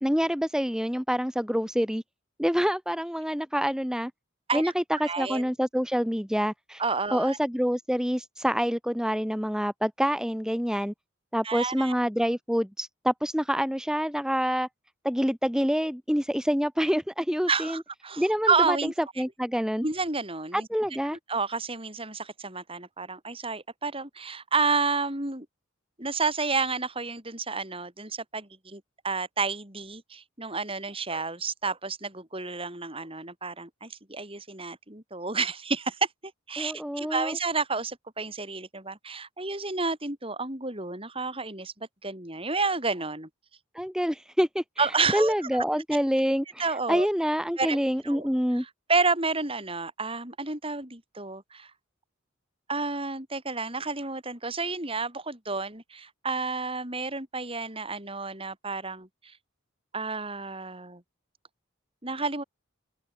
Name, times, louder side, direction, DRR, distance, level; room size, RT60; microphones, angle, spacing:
voice 1, 0.0-2.0 2.4-4.1 4.5-6.8 7.1-10.9 11.3-14.7 15.0-17.8 18.2-18.9 19.2-19.8 20.5-21.2 36.6-37.4 43.7-44.6 45.1-48.6, equal, 5° right, 3.1 m, -27 dB
voice 2, 5.0-5.5 6.8-7.4 11.4-11.9 17.5-18.9 19.8-20.7 21.1-25.5 26.0-43.3 44.8-45.3 46.6-47.1 47.6-47.8 48.0-48.3 48.5-51.7 52.7-59.4 59.9-61.0 62.0-62.4, right 4 dB, 25° right, 7.6 m, -30 dB
open air
head